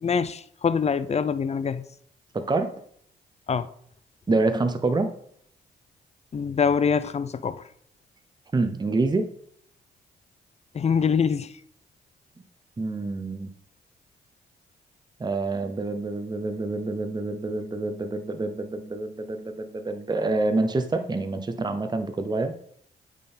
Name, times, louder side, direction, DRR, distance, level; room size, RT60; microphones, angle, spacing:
voice 1, 0.0-1.8 3.5-3.7 6.3-7.6 10.7-11.5, left 6 dB, 35° left, 0.6 m, -24 dB
voice 2, 2.3-2.7 4.3-5.1 8.5-9.3 12.8-13.5 15.2-22.5, right 3 dB, 25° right, 0.8 m, -27 dB
8.6 x 3.8 x 4.3 m
supercardioid pair, 55°, 18 cm